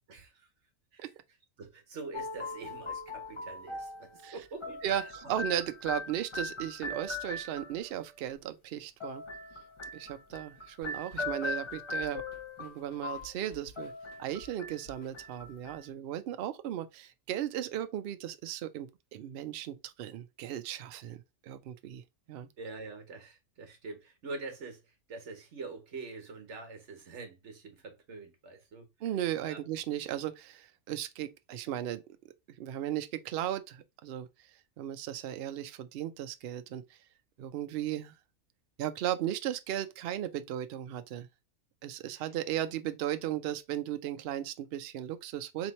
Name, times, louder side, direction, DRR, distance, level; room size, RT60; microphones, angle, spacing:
voice 1, 0.1-0.5 0.9-1.0 1.6-5.1 22.6-28.9 29.4-29.6 42.1-42.3, right 3 dB, 55° right, 1.4 m, -45 dB
sound 1, 2.1-8.0 9.0-15.9, left 3 dB, 35° left, 0.5 m, -40 dB
voice 2, 4.8-9.2 9.9-12.2 12.6-13.9 14.2-22.0 22.3-22.5 29.0-32.0 32.6-34.3 34.8-36.8 37.4-38.1 38.8-41.3 41.8-45.7, right 11 dB, 75° right, 0.5 m, -36 dB
sound 2, 10.8-15.8, right 1 dB, 55° left, 1.6 m, -57 dB
3.5 x 3.0 x 4.1 m
omnidirectional pair, 1.5 m